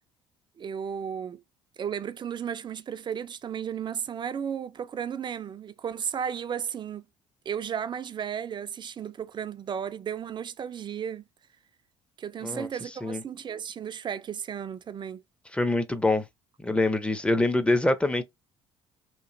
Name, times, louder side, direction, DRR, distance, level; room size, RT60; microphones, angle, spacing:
voice 1, 0.6-1.4 1.8-7.0 7.5-11.2 12.2-15.2, right 8 dB, 35° right, 0.4 m, -34 dB
voice 2, 15.5-16.2 16.6-18.2, left 2 dB, 10° left, 0.6 m, -24 dB
3.0 x 2.5 x 2.5 m
supercardioid pair, 75°, 13 cm